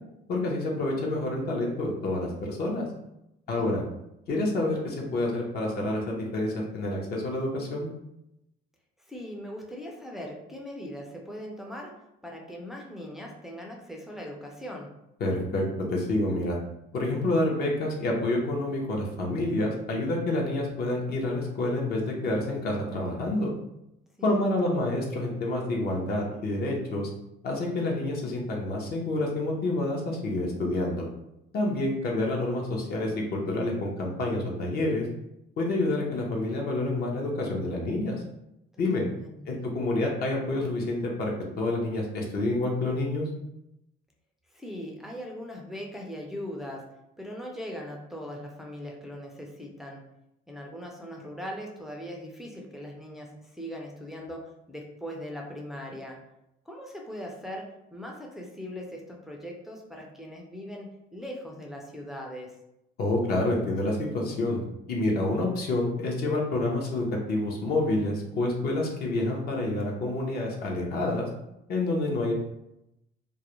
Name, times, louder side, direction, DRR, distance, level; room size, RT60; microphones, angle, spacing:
voice 1, 0.3-2.9 3.5-3.8 4.3-7.9 15.2-16.6 16.9-23.5 24.2-27.1 27.4-31.0 31.5-35.1 35.6-38.2 38.8-39.0 39.5-43.3 63.0-64.6 64.9-71.3 71.7-72.3, left 2 dB, 50° left, -1 dB, 0.7 m, -28 dB
voice 2, 9.1-12.0 12.2-14.9 24.2-24.4 38.7-39.7 44.5-46.9 47.2-50.0 50.5-56.2 56.7-62.5, equal, ahead, -1 dB, 0.4 m, -40 dB
2.4 x 2.0 x 2.9 m, 0.85 s
cardioid pair, 125°, 20 cm